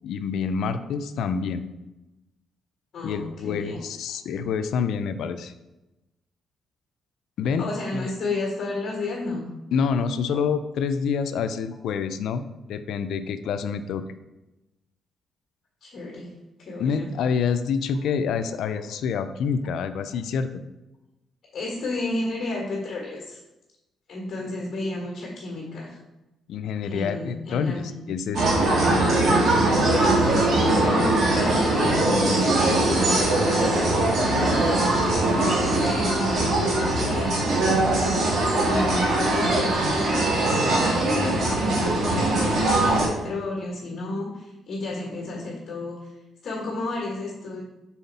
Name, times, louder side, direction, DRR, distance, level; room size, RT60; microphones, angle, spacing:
voice 1, 0.0-1.7 3.0-5.5 7.4-8.1 9.7-12.4 12.7-14.0 16.8-20.5 26.5-28.5, left 6 dB, 75° left, 10 dB, 0.4 m, -27 dB
voice 2, 2.9-3.8 7.6-9.4 15.8-16.3 16.6-17.1 21.5-23.4 24.1-26.0 26.8-27.9 29.0-29.2 29.8-30.3 30.6-46.1 46.4-47.6, left 2 dB, 55° left, -3 dB, 1.5 m, -32 dB
sound 1, 28.3-43.1, right 2 dB, 65° right, 1.6 m, -21 dB
5.6 x 4.3 x 4.1 m, 0.99 s
cardioid pair, 90°, 0 cm